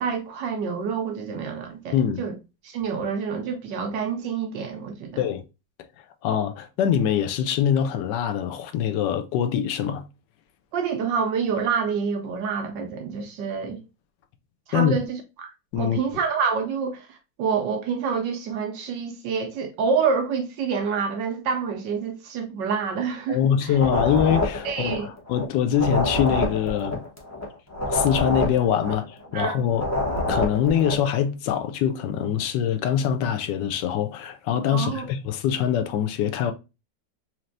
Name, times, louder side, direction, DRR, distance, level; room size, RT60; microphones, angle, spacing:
voice 1, 0.0-2.4 2.6-5.3 10.7-13.8 14.7-23.8 24.6-25.1 29.3-29.6 34.7-35.1, right 6 dB, 75° right, 1.3 m, -27 dB
voice 2, 1.9-2.2 5.2-5.4 6.2-10.0 14.7-14.9 15.7-16.0 23.3-27.0 27.9-29.9 30.3-36.5, left 9 dB, 75° left, 1.2 m, -24 dB
sound 1, 23.7-25.4 25.7-29.4 29.7-31.1, left 2 dB, 25° left, 0.3 m, -27 dB
4.3 x 3.1 x 2.5 m
omnidirectional pair, 2.0 m